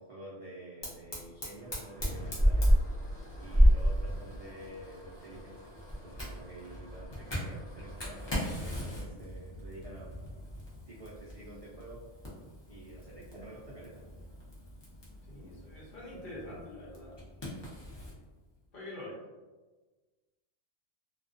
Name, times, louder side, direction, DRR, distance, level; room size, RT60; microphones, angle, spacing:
voice 1, 0.0-2.7 3.4-10.1 10.9-12.0 12.7-14.0, right 1 dB, 70° right, -7 dB, 0.3 m, -49 dB
Fire, 0.8-18.2, equal, 30° left, 0.5 m, -32 dB
voice 2, 15.3-17.2 18.7-19.2, left 1 dB, 50° left, -7 dB, 0.9 m, -45 dB
2.3 x 2.2 x 2.4 m, 1.3 s
omnidirectional pair, 1.3 m